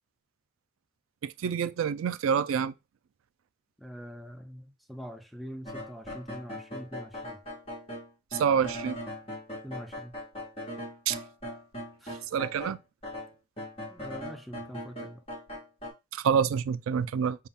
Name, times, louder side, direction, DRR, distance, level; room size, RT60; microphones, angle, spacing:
voice 1, 1.2-2.7 8.3-9.0 11.1-11.2 12.3-12.8 16.1-17.4, right 7 dB, 85° right, 0.3 m, -27 dB
voice 2, 3.8-7.4 9.6-10.1 12.0-12.3 13.9-15.2, equal, ahead, 0.4 m, -44 dB
sound 1, 5.7-12.8 13.0-15.9, left 1 dB, 30° left, 1.6 m, -40 dB
5.5 x 2.3 x 3.5 m
head